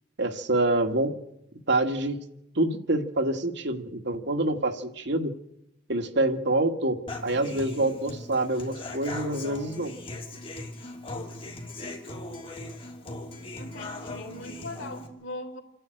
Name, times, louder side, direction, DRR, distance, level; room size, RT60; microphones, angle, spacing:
voice 1, 0.2-1.1 1.7-2.2 2.5-5.3 5.9-9.9, right 2 dB, 65° right, 6 dB, 1.7 m, -26 dB
Human voice / Acoustic guitar, 7.1-15.1, left 2 dB, 30° left, 3.1 m, -39 dB
voice 2, 13.5-15.6, left 1 dB, 80° left, 5 dB, 3.2 m, -40 dB
28.0 x 11.0 x 9.1 m, 0.81 s
head